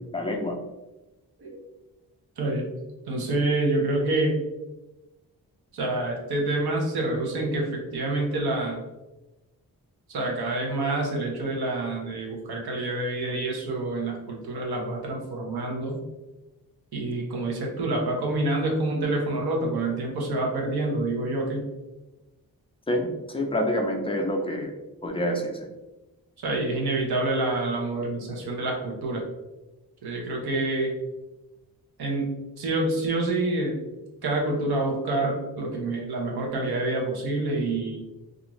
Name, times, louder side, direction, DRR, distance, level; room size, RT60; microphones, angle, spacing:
voice 1, 0.1-0.6 22.9-24.7 25.0-25.6, equal, 15° left, 1 dB, 0.3 m, -27 dB
voice 2, 3.1-4.4 5.7-8.8 10.1-16.0 16.9-21.6 26.4-29.2 30.0-30.9 32.0-32.3 32.6-33.8 34.2-38.0, right 2 dB, 85° right, 0 dB, 0.7 m, -27 dB
2.5 x 2.4 x 2.9 m, 1.0 s
wide cardioid pair, 135°, 37 cm